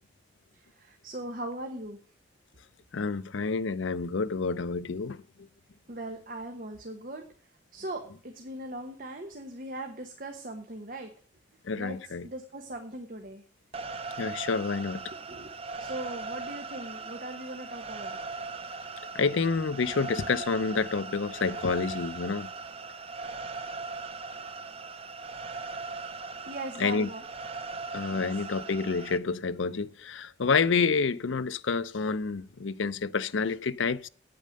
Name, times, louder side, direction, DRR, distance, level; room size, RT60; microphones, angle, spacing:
voice 1, 0.5-2.0 5.9-7.2 7.7-11.1 11.7-13.4 15.3-15.5 15.8-18.2 26.5-27.2 28.1-28.5, right 1 dB, 45° right, 1.2 m, -39 dB
voice 2, 2.9-5.2 11.6-12.3 14.2-15.0 19.1-22.5 26.8-27.1 27.9-34.1, left 4 dB, 85° left, 0.6 m, -28 dB
sound 1, 13.7-29.2, right 4 dB, 30° right, 0.7 m, -39 dB
8.8 x 8.6 x 6.5 m
head